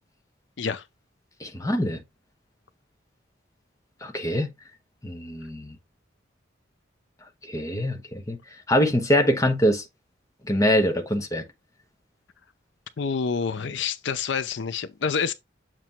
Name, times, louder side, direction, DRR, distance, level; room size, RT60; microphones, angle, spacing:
voice 1, 1.4-2.0 4.0-4.5 5.0-5.7 7.5-8.4 8.7-9.8 10.4-11.4, equal, 15° left, 1.0 m, -23 dB
voice 2, 13.0-15.3, left 6 dB, 70° left, 0.5 m, -27 dB
7.5 x 3.0 x 4.4 m
head